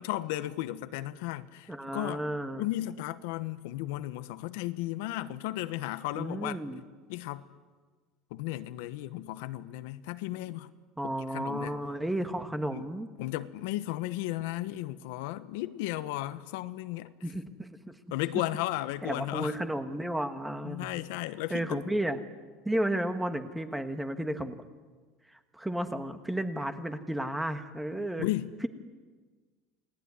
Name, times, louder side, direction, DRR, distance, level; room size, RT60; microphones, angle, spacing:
voice 1, 0.0-2.2 2.6-6.6 7.1-7.5 8.3-10.7 11.0-11.8 12.7-12.8 13.2-17.1 18.1-19.6 20.6-21.8 28.2-28.5, left 16 dB, 75° left, 1.2 m, -34 dB
voice 2, 1.7-2.6 6.1-6.8 11.0-13.1 17.2-18.0 19.0-20.9 21.5-22.2 22.6-24.6 25.5-28.3, right 1 dB, 5° right, 1.4 m, -33 dB
29.0 x 19.5 x 9.7 m
cardioid pair, 160°, 0 cm